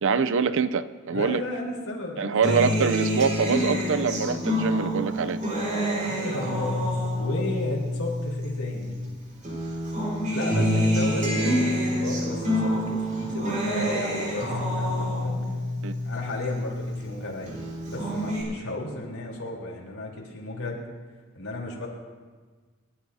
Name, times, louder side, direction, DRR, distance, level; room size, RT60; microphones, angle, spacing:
voice 1, 0.0-1.4 2.2-5.4 15.8-15.9, right 5 dB, 65° right, 14 dB, 0.6 m, -24 dB
voice 2, 1.1-2.7 6.0-9.0 10.3-15.4 16.0-20.8 21.3-21.9, left 2 dB, 85° left, -2 dB, 3.8 m, -34 dB
Acoustic guitar, 2.4-9.1 9.4-17.1 17.5-18.4, equal, 40° right, 4.7 m, -27 dB
28.0 x 13.0 x 2.8 m, 1.4 s
head